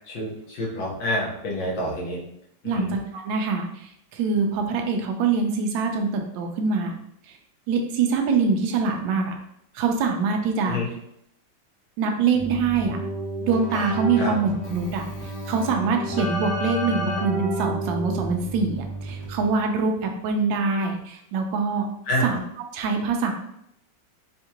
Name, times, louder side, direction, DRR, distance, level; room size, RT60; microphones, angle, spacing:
voice 1, 0.1-2.2 2.7-2.9 10.7-10.9 14.2-14.3 22.1-22.3, equal, 75° left, -4 dB, 1.7 m, -27 dB
voice 2, 2.6-6.9 7.7-9.3 9.7-10.8 12.0-13.0 13.4-15.0 15.5-21.9 22.2-22.4 22.7-23.3, right 5 dB, 75° right, 3 dB, 1.3 m, -24 dB
Keyboard (musical), 12.3-19.6, equal, 45° left, 1.0 m, -31 dB
4.4 x 2.4 x 2.8 m, 0.75 s
omnidirectional pair, 2.1 m